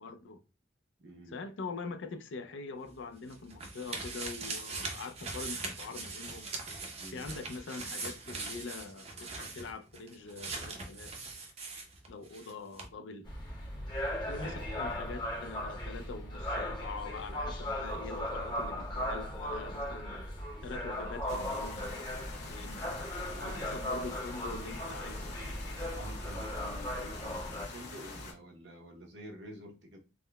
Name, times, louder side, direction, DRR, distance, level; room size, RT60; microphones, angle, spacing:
voice 1, 0.0-0.4 1.3-6.5 7.1-11.2 12.1-13.3 14.2-20.2 20.6-22.8 23.4-25.4, left 4 dB, 90° left, 0.4 m, -44 dB
voice 2, 1.0-1.4 7.0-7.4 14.4-14.8 23.2-23.8 25.9-30.0, equal, 70° right, 0.8 m, -49 dB
sound 1, 2.9-12.5 12.8-12.9, right 3 dB, 35° right, 0.6 m, -41 dB
sound 2, 13.2-27.7, left 1 dB, 25° left, 0.8 m, -37 dB
sound 3, 21.3-28.3, left 3 dB, 60° left, 0.9 m, -45 dB
3.5 x 2.1 x 2.2 m
head